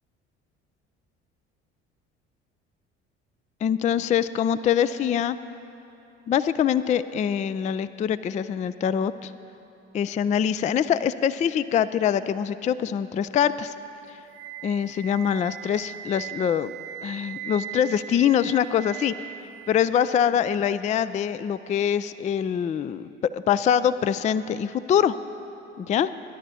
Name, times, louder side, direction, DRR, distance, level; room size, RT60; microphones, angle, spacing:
voice 1, 3.6-5.4 6.3-9.3 9.9-13.7 14.6-16.7 17.0-19.1 19.7-25.2 25.8-26.1, left 8 dB, 20° left, 15 dB, 0.3 m, -24 dB
Wind instrument woodwind instrument, 14.3-20.3, right 11 dB, 55° right, 0.9 m, -40 dB
20.0 x 11.0 x 4.2 m, 2.8 s
hypercardioid pair, 60°, 35 cm